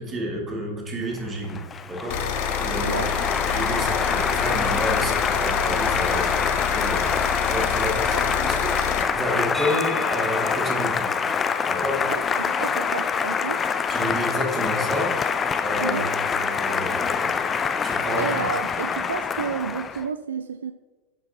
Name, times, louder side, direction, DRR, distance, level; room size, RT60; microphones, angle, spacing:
voice 1, 0.0-1.6 1.9-2.2 2.6-2.9 3.5-8.7 9.1-11.1 11.7-12.1 13.9-15.2 15.6-17.5 17.8-18.4, equal, 20° right, -1 dB, 2.1 m, -30 dB
Applause, 1.2-20.1, left 6 dB, 20° left, 0.4 m, -25 dB
sound 1, 2.1-9.0, left 7 dB, 50° left, 0.8 m, -28 dB
voice 2, 2.8-3.3 8.1-8.4 12.1-13.6 15.8-16.1 18.1-20.7, right 6 dB, 70° right, 10 dB, 0.3 m, -31 dB
sound 2, 9.5-13.3, equal, 5° left, 0.9 m, -37 dB
11.0 x 5.7 x 2.8 m, 1.2 s
figure-of-eight pair, 90°, 0 cm